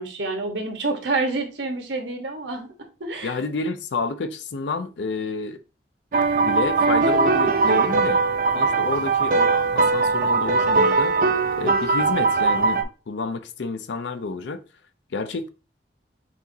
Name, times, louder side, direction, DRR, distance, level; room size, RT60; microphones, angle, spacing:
voice 1, 0.0-2.7 3.0-3.3, right 3 dB, 85° right, 1.2 m, -28 dB
voice 2, 3.2-5.6 6.4-8.2 8.5-11.2 11.5-14.6 15.1-15.5, left 3 dB, 85° left, 0.5 m, -29 dB
sound 1, 6.1-12.8, right 4 dB, 50° right, 0.5 m, -20 dB
6.0 x 3.0 x 2.7 m
head